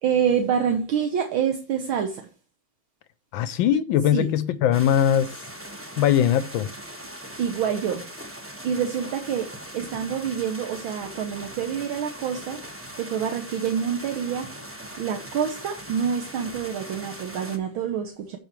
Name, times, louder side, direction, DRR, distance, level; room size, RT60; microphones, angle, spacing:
voice 1, 0.0-2.3 4.1-4.3 7.4-8.0 8.6-9.5 9.7-12.6 12.9-14.5 15.0-18.4, right 8 dB, 70° right, 1.7 m, -27 dB
voice 2, 3.3-5.3 6.0-6.7, left 10 dB, 75° left, 1.2 m, -21 dB
sound 1, 4.7-17.6, right 1 dB, 15° right, 0.4 m, -40 dB
14.0 x 4.9 x 3.1 m
omnidirectional pair, 2.4 m